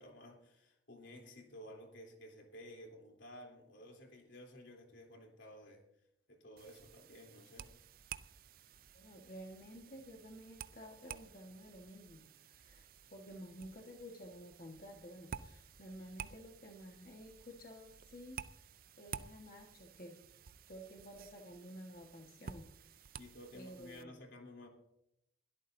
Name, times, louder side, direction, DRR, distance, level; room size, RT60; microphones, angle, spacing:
voice 1, 0.0-5.9 6.3-7.7 23.2-24.7, left 1 dB, 80° left, 2 dB, 3.3 m, -54 dB
sound 1, 6.6-24.0, right 7 dB, 50° right, 0.4 m, -53 dB
voice 2, 8.9-20.2 20.7-23.2 23.5-24.2, equal, 50° left, 1 dB, 1.5 m, -52 dB
22.0 x 12.5 x 2.7 m, 0.78 s
head